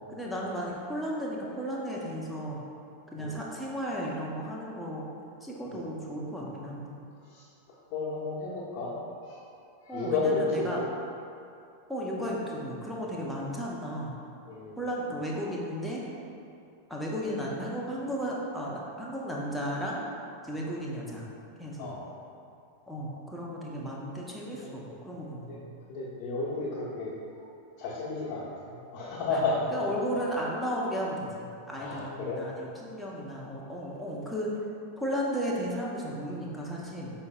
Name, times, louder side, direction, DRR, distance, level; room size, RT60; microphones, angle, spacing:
voice 1, 0.1-2.6 3.1-5.1 5.4-7.0 9.9-10.8 11.9-14.2 14.8-16.0 16.9-20.1 20.4-21.3 21.6-21.9 22.9-25.6 29.3-29.4 29.7-34.6 35.0-37.1, equal, ahead, -5 dB, 0.7 m, -34 dB
voice 2, 7.9-8.9 9.2-9.4 9.8-10.8 14.5-14.8 21.8-22.0 24.6-24.9 25.4-25.6 25.9-27.1 27.8-29.9 31.8-32.4, left 3 dB, 40° left, -7 dB, 1.0 m, -32 dB
5.4 x 4.2 x 2.3 m, 2.6 s
figure-of-eight pair, 90°, 0 cm